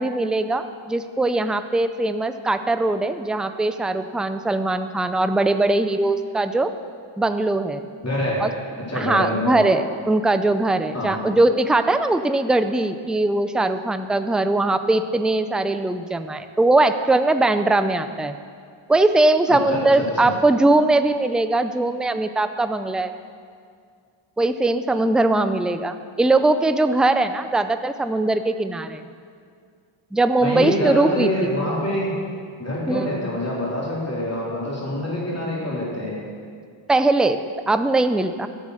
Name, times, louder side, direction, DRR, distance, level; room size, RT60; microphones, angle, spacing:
voice 1, 0.0-6.7 7.2-7.8 8.4-8.5 8.9-18.4 18.9-23.1 24.4-29.0 30.1-31.5 32.9-33.1 36.9-37.4 37.7-38.5, right 2 dB, ahead, 10 dB, 0.4 m, -20 dB
voice 2, 8.0-8.4 8.8-9.7 10.9-11.3 19.5-19.8 20.2-20.3 30.4-32.1 32.6-36.2, left 1 dB, 30° left, -5 dB, 3.6 m, -26 dB
13.5 x 8.0 x 6.5 m, 2.2 s
wide cardioid pair, 95°, 50 cm